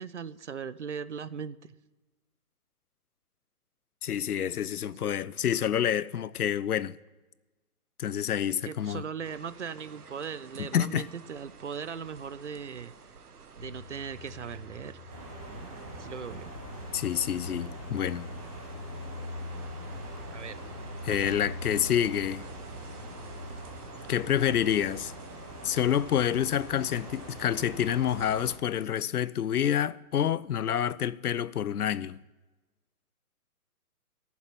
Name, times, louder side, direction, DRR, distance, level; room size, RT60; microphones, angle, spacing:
voice 1, 0.0-1.6 8.5-12.9 13.6-14.9 15.4-15.7 15.9-16.5 20.3-20.6 21.1-21.3, right 6 dB, 55° right, 0.6 m, -39 dB
voice 2, 4.0-7.0 8.0-9.0 10.6-11.1 16.9-18.3 21.0-22.4 24.1-25.1 25.6-32.2, left 9 dB, 80° left, 0.7 m, -28 dB
sound 1, 9.2-28.6, right 5 dB, 90° right, 1.4 m, -51 dB
sound 2, 13.6-23.6, left 2 dB, 10° right, 1.4 m, -43 dB
sound 3, 15.1-28.5, right 1 dB, 25° right, 1.7 m, -44 dB
14.0 x 7.2 x 9.6 m
hypercardioid pair, 175°, 44 cm